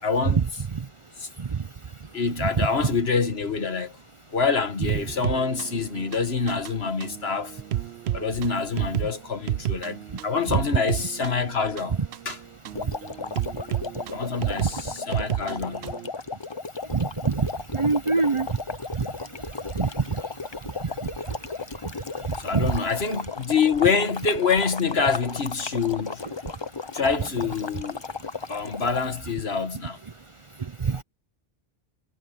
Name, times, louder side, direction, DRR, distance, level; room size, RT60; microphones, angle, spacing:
voice 1, 0.0-0.4 1.2-1.3 2.1-3.9 4.3-7.6 8.1-12.0 12.3-12.4 14.1-15.9 22.4-26.2 26.9-28.0 28.5-30.0, left 5 dB, 75° left, 1.9 m, -26 dB
sound 1, 4.9-16.1, right 12 dB, 85° right, 0.9 m, -32 dB
sound 2, 12.7-29.2, left 4 dB, 30° left, 0.8 m, -35 dB
voice 2, 16.9-17.5 17.7-18.5 19.0-19.1 19.8-19.9 22.5-22.7 30.9-31.0, right 4 dB, 35° right, 0.6 m, -23 dB
omnidirectional pair, 1.1 m